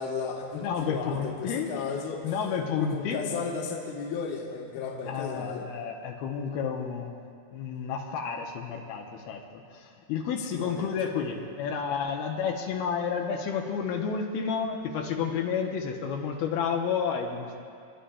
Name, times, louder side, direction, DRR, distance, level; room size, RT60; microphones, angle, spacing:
voice 1, 0.0-2.2 2.7-5.7 10.4-11.1, left 5 dB, 65° left, 0 dB, 2.3 m, -34 dB
voice 2, 0.5-1.7 2.2-3.2 5.1-7.2 7.5-9.4 9.8-17.6, left 6 dB, 80° left, 1 dB, 2.6 m, -31 dB
30.0 x 11.5 x 2.2 m, 2.3 s
omnidirectional pair, 4.4 m